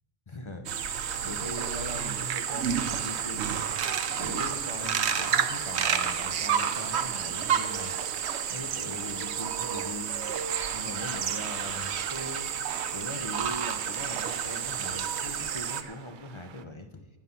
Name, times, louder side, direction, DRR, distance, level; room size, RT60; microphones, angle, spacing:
voice 1, 0.3-0.8 1.2-3.6 4.1-7.9 8.5-10.3 10.7-12.5 12.9-17.1, left 1 dB, 30° left, 6 dB, 0.7 m, -40 dB
sound 1, 0.7-15.8, right 8 dB, 80° right, 1.0 m, -31 dB
sound 2, 1.0-16.6, right 8 dB, 55° right, 0.6 m, -39 dB
17.0 x 5.8 x 5.8 m, 1.2 s
omnidirectional pair, 1.1 m